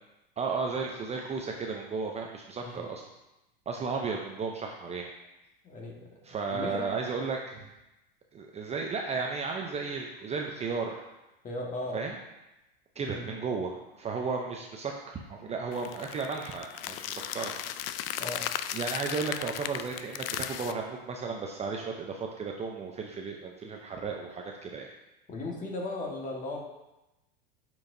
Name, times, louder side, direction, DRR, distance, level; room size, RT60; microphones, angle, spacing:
voice 1, 0.4-3.0 3.7-5.1 6.2-7.7 8.3-11.0 11.9-12.2 13.0-17.5 18.7-24.9, right 4 dB, 20° right, 1 dB, 0.6 m, -34 dB
voice 2, 2.6-2.9 5.6-6.1 6.5-6.9 11.4-12.0 13.0-13.3 18.2-18.4 25.3-26.6, left 2 dB, 25° left, -1 dB, 1.6 m, -36 dB
sound 1, 15.7-20.7, left 11 dB, 75° left, 0.5 m, -36 dB
8.7 x 4.6 x 2.7 m, 0.96 s
hypercardioid pair, 105°, 29 cm